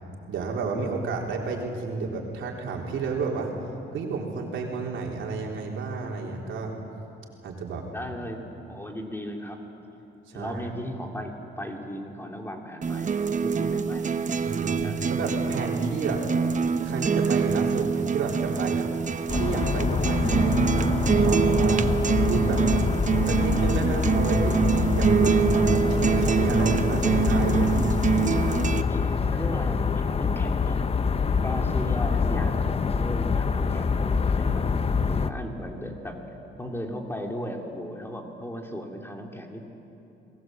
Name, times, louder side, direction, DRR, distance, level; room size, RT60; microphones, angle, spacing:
voice 1, 0.3-3.5 3.9-6.7 7.4-7.9 10.3-10.6 14.4-16.3 16.8-18.9 19.3-21.9 22.2-22.6 23.3-28.0, right 4 dB, 75° right, 0 dB, 3.8 m, -31 dB
voice 2, 7.9-9.6 10.3-14.0 14.5-15.0 15.4-15.5 26.9-27.1 28.6-30.9 31.4-36.2 36.6-39.6, equal, 10° left, 1 dB, 3.2 m, -36 dB
sound 1, 12.8-28.8, right 6 dB, 40° right, 1.0 m, -25 dB
sound 2, 19.3-35.3, left 5 dB, 30° left, 0.8 m, -25 dB
27.5 x 20.0 x 7.8 m, 2.9 s
cardioid pair, 90°, 20 cm